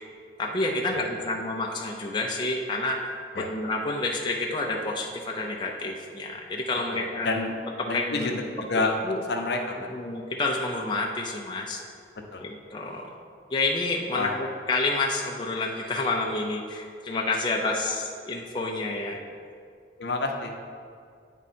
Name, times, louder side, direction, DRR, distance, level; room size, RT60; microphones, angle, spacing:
voice 1, 0.4-7.3 7.8-8.4 8.7-9.2 9.9-11.8 12.4-13.2 13.5-19.2, left 2 dB, 25° left, -1 dB, 0.4 m, -29 dB
voice 2, 6.9-7.5 7.9-8.3 8.7-8.9 9.3-9.9 12.3-12.4 14.1-14.3 20.0-20.6, left 3 dB, 65° left, 3 dB, 0.7 m, -28 dB
9.0 x 3.6 x 4.2 m, 2.2 s
head